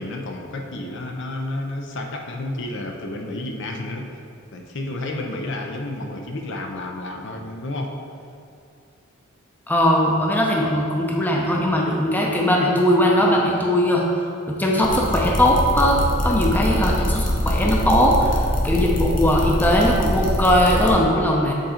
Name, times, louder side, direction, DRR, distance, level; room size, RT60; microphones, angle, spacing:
voice 1, 0.0-4.1 4.5-7.9, left 2 dB, 60° left, 2 dB, 0.6 m, -31 dB
voice 2, 9.7-14.1 14.5-21.5, equal, 10° left, -2 dB, 0.6 m, -19 dB
sound 1, 14.8-20.9, equal, 40° left, 1.0 m, -24 dB
8.0 x 3.8 x 4.3 m, 2.4 s
head